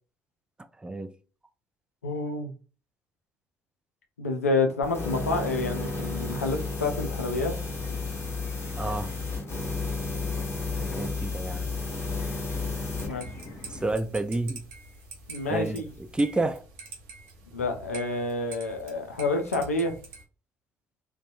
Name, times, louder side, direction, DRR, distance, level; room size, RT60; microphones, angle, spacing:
voice 1, 0.8-1.1 8.8-9.1 10.8-11.7 13.7-14.6 15.5-15.8 16.1-16.6, right 2 dB, 10° right, 0.4 m, -29 dB
voice 2, 2.0-2.5 4.2-7.5 10.1-10.2 13.0-13.3 15.3-15.9 17.5-20.0, left 3 dB, 85° left, 0.4 m, -28 dB
sound 1, 4.8-13.1, left 3 dB, 35° left, 1.1 m, -32 dB
sound 2, 5.4-13.9, left 2 dB, 55° left, 0.8 m, -44 dB
sound 3, 13.0-20.2, right 3 dB, 75° right, 0.5 m, -46 dB
2.6 x 2.2 x 2.5 m
figure-of-eight pair, 45°, 8 cm